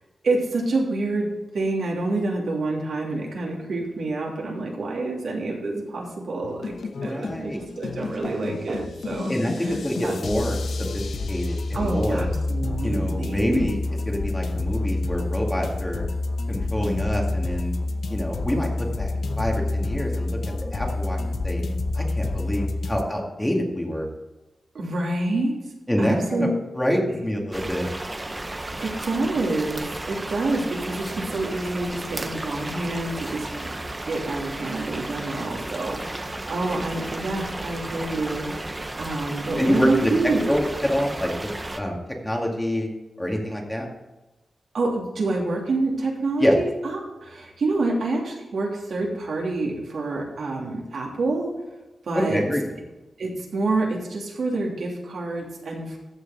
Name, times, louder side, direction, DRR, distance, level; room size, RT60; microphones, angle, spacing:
voice 1, 0.2-1.3 1.5-6.7 7.0-9.3 9.6-10.1 11.7-13.7 24.7-25.5 26.0-26.5 27.1-27.2 28.8-33.7 34.0-38.7 39.0-40.5 44.7-51.5 52.0-52.4 53.2-56.0, right 2 dB, 75° right, -1 dB, 3.0 m, -27 dB
sound 1, 6.4-23.0, left 2 dB, 80° left, 0.8 m, -28 dB
voice 2, 7.0-7.6 9.3-10.6 10.9-12.3 12.8-13.8 14.1-16.0 16.5-17.7 18.1-20.4 20.7-21.6 21.9-24.1 25.9-26.5 26.7-27.9 39.6-41.3 41.7-42.9 43.2-43.9 46.4-46.6 52.2-52.6, equal, 10° left, 0 dB, 2.1 m, -26 dB
sound 2, 8.2-8.9, right 4 dB, 50° right, 0.5 m, -35 dB
sound 3, 27.5-41.8, right 2 dB, 20° right, 0.8 m, -34 dB
14.0 x 7.0 x 4.0 m, 1.1 s
wide cardioid pair, 125°, 0 cm